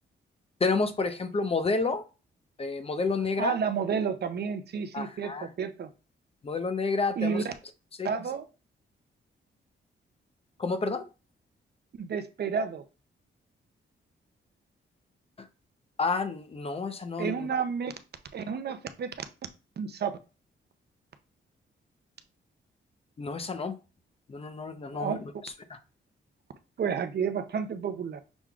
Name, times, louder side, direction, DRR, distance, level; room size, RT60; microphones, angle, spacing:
voice 1, 0.6-2.0 2.6-3.6 4.9-5.5 6.4-7.5 8.0-8.1 10.6-11.0 15.4-15.5 16.0-17.5 23.2-23.7 24.3-25.8, left 4 dB, 30° left, 9 dB, 0.7 m, -30 dB
voice 2, 3.4-5.9 7.2-7.5 8.0-8.5 12.0-12.8 17.2-17.9 18.3-19.3 19.8-20.1 25.0-25.2 26.8-28.2, right 6 dB, 55° right, 10 dB, 0.6 m, -31 dB
6.1 x 3.6 x 2.3 m, 0.32 s
cardioid pair, 95°, 20 cm